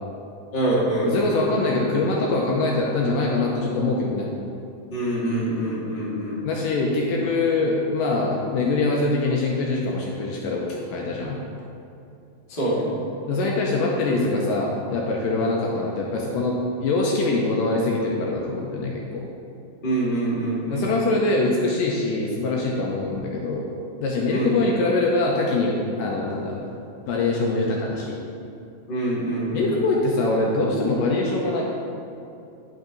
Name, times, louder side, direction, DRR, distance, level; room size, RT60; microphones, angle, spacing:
voice 1, 0.5-1.4 4.9-6.4 12.5-12.9 19.8-20.9 24.3-24.5 28.9-29.7, right 1 dB, 20° left, -8 dB, 1.4 m, -25 dB
voice 2, 1.0-4.3 6.4-11.4 13.3-19.3 20.7-23.7 24.0-26.6 27.1-28.2 29.5-31.6, left 2 dB, 75° left, -2 dB, 2.2 m, -23 dB
10.5 x 5.7 x 3.9 m, 2.7 s
omnidirectional pair, 4.3 m